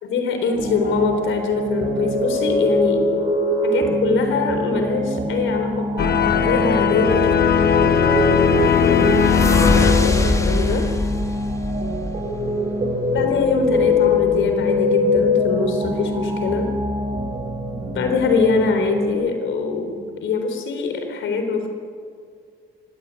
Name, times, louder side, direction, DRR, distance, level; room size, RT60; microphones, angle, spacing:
voice 1, 0.0-3.1 3.6-10.9 13.1-16.7 17.9-21.7, left 4 dB, 75° left, 6 dB, 3.9 m, -23 dB
sound 1, 0.5-19.1, left 1 dB, 30° right, 7.1 m, -23 dB
sound 2, 6.0-10.8, left 8 dB, 50° left, 1.3 m, -19 dB
sound 3, 7.6-12.6, left 2 dB, 15° left, 1.8 m, -24 dB
24.5 x 17.0 x 8.4 m, 2.1 s
cardioid pair, 90°, 20 cm